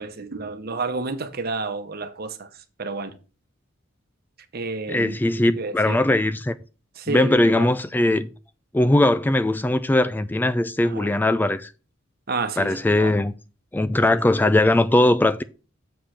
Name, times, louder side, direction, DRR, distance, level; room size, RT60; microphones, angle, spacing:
voice 1, 0.0-2.5 2.8-3.1 4.5-5.2 5.6-6.0 7.0-7.7 10.8-11.1 12.3-13.1 14.1-14.2, right 3 dB, 50° right, 1.0 m, -30 dB
voice 2, 4.9-6.5 7.1-8.3 8.7-11.7 12.6-13.3 13.7-15.4, left 1 dB, 10° left, 0.3 m, -20 dB
7.2 x 5.0 x 5.8 m
head